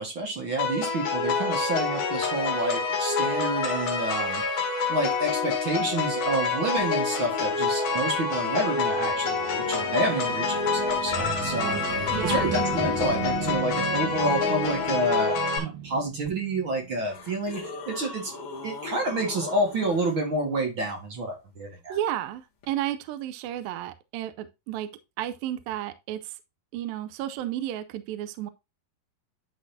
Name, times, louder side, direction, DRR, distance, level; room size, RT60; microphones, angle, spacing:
voice 1, 0.0-4.4 4.9-11.8 12.2-18.3 18.6-22.0, right 2 dB, 50° right, 1.7 m, -29 dB
sound 1, 0.6-15.6, left 4 dB, 75° left, 3.4 m, -27 dB
sound 2, 8.2-17.4, right 8 dB, 65° right, 2.9 m, -36 dB
sound 3, 10.4-10.5 10.6-13.8 16.2-16.3 17.0-20.1 22.6-22.7, left 3 dB, 45° left, 2.6 m, -38 dB
voice 2, 12.1-12.5 21.9-24.9 25.2-26.3 26.7-28.5, right 12 dB, 80° right, 2.4 m, -32 dB
12.0 x 4.1 x 2.7 m
omnidirectional pair, 4.2 m